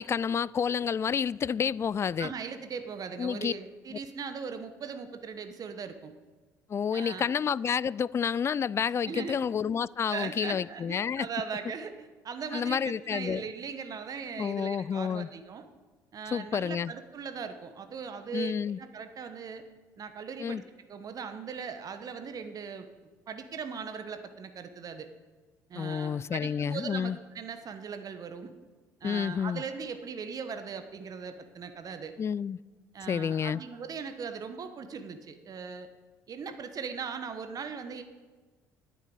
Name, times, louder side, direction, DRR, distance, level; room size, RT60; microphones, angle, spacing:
voice 1, 0.0-2.3 3.2-3.5 6.7-11.3 12.5-13.4 14.4-15.3 16.3-16.9 18.3-18.8 20.4-20.6 25.8-27.2 29.0-29.6 32.2-32.6 33.1-33.6, left 7 dB, 30° left, 22 dB, 0.3 m, -29 dB
voice 2, 2.2-6.1 6.9-7.3 9.0-9.4 10.1-15.6 16.1-19.6 20.0-20.6 20.9-22.9 23.3-25.1 25.7-28.5 29.0-32.1 32.9-35.9 36.3-38.0, right 6 dB, 40° right, 8 dB, 1.2 m, -39 dB
9.7 x 8.3 x 8.5 m, 1.3 s
hypercardioid pair, 60°, 9 cm